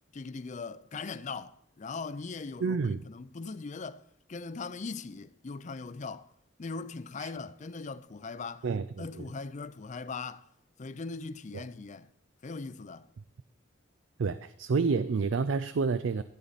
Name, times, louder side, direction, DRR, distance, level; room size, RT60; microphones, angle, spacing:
voice 1, 0.1-6.3 6.6-8.7 9.0-10.5 10.8-12.1 12.4-13.1, left 4 dB, 40° left, 0.5 m, -40 dB
voice 2, 2.6-3.0 7.2-7.3 8.6-9.3 11.5-11.7 14.2-16.2, right 4 dB, 85° right, 0.4 m, -29 dB
14.0 x 8.6 x 4.1 m
head